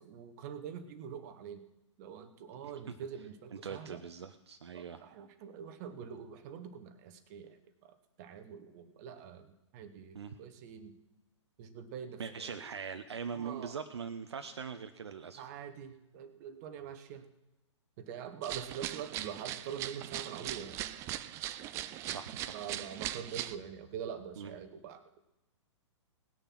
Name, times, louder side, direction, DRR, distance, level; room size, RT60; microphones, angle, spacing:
voice 1, 0.0-1.6 2.0-4.0 4.7-7.6 7.8-7.9 8.2-9.5 9.7-10.9 11.6-12.6 13.3-13.8 15.4-17.3 18.0-20.9 22.5-25.0, right 8 dB, 35° right, 9 dB, 1.2 m, -44 dB
voice 2, 2.6-3.0 3.5-5.0 10.1-10.4 12.2-15.4 22.0-22.6 24.4-24.5, right 6 dB, 60° right, 8 dB, 0.8 m, -42 dB
sound 1, 18.4-23.6, right 13 dB, 20° right, 0.4 m, -40 dB
18.5 x 6.7 x 6.0 m, 0.96 s
figure-of-eight pair, 115°, 16 cm